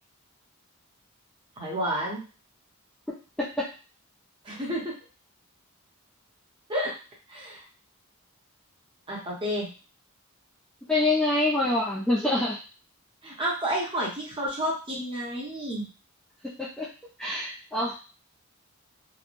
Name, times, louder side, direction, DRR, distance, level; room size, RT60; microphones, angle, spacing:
voice 1, 1.6-2.2 4.4-4.9 6.7-6.9 7.3-7.6 9.1-9.7 13.2-15.8, equal, 25° right, -3 dB, 0.8 m, -30 dB
voice 2, 10.9-12.6 16.6-16.9 17.2-18.0, left 2 dB, 5° left, -6 dB, 0.4 m, -25 dB
3.0 x 2.1 x 2.5 m, 0.35 s
head